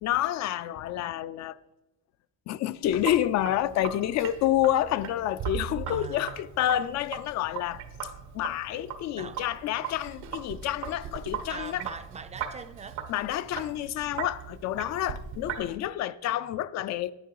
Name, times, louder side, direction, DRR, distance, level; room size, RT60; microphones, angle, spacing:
voice 1, 0.0-1.6 2.5-7.8 8.3-11.8 13.1-17.1, left 12 dB, 65° left, 0.4 m, -28 dB
Sink (filling or washing), 2.8-15.7, right 8 dB, 90° right, 1.3 m, -40 dB
Bass drum, 5.4-6.8, right 8 dB, 60° right, 0.8 m, -37 dB
voice 2, 5.9-6.4 9.1-9.4 11.5-13.0, right 5 dB, 25° right, 0.4 m, -41 dB
10.5 x 9.3 x 4.6 m
cardioid pair, 145°, 29 cm